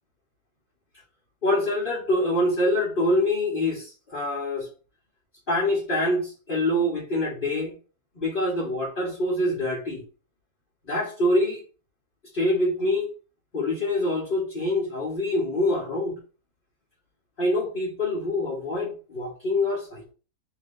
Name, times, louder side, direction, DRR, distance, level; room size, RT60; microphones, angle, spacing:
voice 1, 1.4-4.7 5.5-7.7 8.1-10.0 10.9-11.6 12.3-13.1 13.5-16.1 17.4-20.1, left 1 dB, 35° left, -7 dB, 1.4 m, -25 dB
3.3 x 3.0 x 3.7 m, 0.36 s
omnidirectional pair, 1.6 m